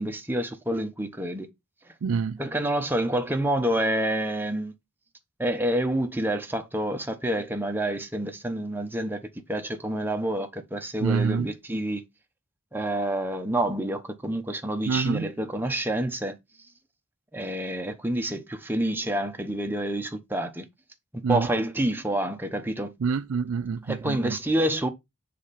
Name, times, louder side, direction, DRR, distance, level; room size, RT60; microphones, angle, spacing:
voice 1, 0.0-1.5 2.4-4.7 5.4-9.2 9.5-12.0 12.7-16.4 17.3-20.6 21.1-22.9 23.8-24.9, right 1 dB, 10° right, 0.9 m, -28 dB
voice 2, 2.0-2.4 11.0-11.5 14.9-15.3 21.2-21.5 23.0-24.4, right 5 dB, 70° right, 0.4 m, -26 dB
7.3 x 3.7 x 4.0 m
head